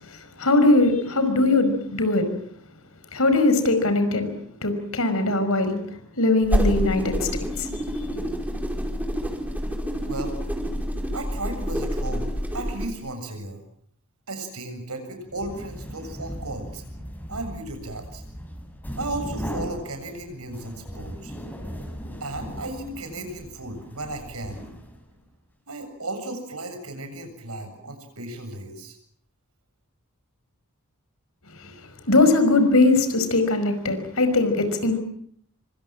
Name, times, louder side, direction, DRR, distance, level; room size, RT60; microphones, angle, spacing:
voice 1, 0.4-2.3 3.1-4.3 4.6-5.8 6.2-7.3 7.6-7.7 8.2-8.3 31.6-31.7 32.1-35.0, left 2 dB, 70° left, 9 dB, 5.5 m, -20 dB
sound 1, 6.4-12.9, equal, 5° right, 5.0 m, -27 dB
voice 2, 10.0-10.4 11.1-13.6 14.3-16.8 17.3-18.2 19.0-21.3 22.2-24.6 25.7-29.0, right 2 dB, 80° right, 7 dB, 7.4 m, -35 dB
sound 2, 15.3-25.2, equal, 10° left, 6.4 m, -37 dB
26.5 x 25.0 x 7.5 m, 0.64 s
head